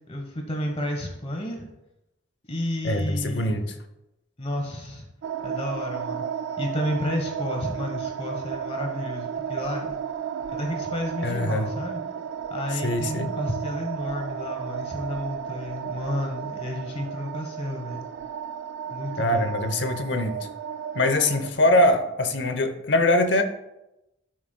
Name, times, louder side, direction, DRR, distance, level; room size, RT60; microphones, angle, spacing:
voice 1, 0.1-1.7 2.5-3.6 4.4-5.1 5.4-6.2 6.6-9.9 10.5-12.0 12.5-18.0 18.9-19.8, left 1 dB, 35° left, 2 dB, 1.0 m, -31 dB
voice 2, 2.8-3.6 11.2-11.7 12.7-13.3 19.2-20.4 20.9-23.4, left 1 dB, 65° left, 8 dB, 0.8 m, -23 dB
sound 1, 5.2-21.5, right 8 dB, 75° right, 0.3 m, -33 dB
11.0 x 6.3 x 2.2 m, 0.92 s
head